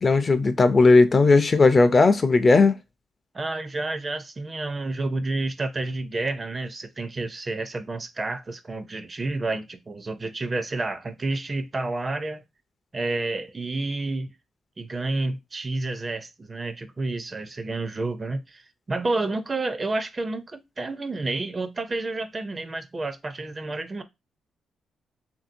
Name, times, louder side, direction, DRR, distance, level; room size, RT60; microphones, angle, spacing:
voice 1, 0.0-2.8, left 3 dB, 35° left, 0.4 m, -17 dB
voice 2, 3.3-12.4 12.9-14.3 14.8-24.0, right 2 dB, 30° right, 0.4 m, -30 dB
2.8 x 2.6 x 2.5 m
cardioid pair, 85°, 0 cm